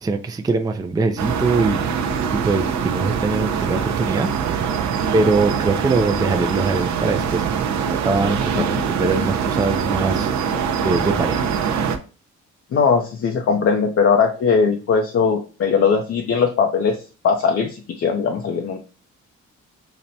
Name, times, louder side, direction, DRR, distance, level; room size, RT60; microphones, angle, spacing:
voice 1, 0.0-1.8 2.3-4.7 5.1-7.4 7.9-10.3 10.8-11.4, right 3 dB, 15° right, 5 dB, 0.4 m, -22 dB
sound 1, 1.2-12.0, right 7 dB, 65° right, 0.6 m, -23 dB
voice 2, 12.7-18.8, left 5 dB, 50° left, 3 dB, 0.5 m, -19 dB
5.8 x 2.1 x 2.7 m, 0.35 s
cardioid pair, 90°, 30 cm